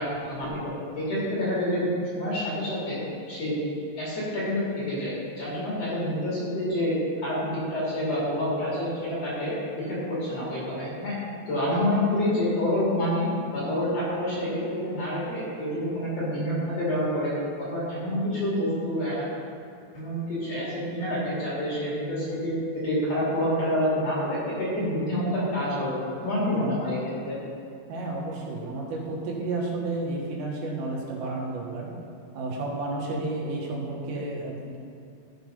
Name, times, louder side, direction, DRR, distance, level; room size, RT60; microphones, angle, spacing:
voice 1, 0.0-1.9 2.1-3.0 3.3-3.6 4.0-6.9 7.2-11.2 11.5-17.3 17.6-19.3 19.9-26.0 26.2-27.4, left 1 dB, 40° left, -8 dB, 3.4 m, -28 dB
voice 2, 27.9-31.9 32.3-34.8, right 2 dB, 75° right, -2 dB, 3.6 m, -31 dB
14.0 x 5.7 x 5.3 m, 2.5 s
omnidirectional pair, 5.1 m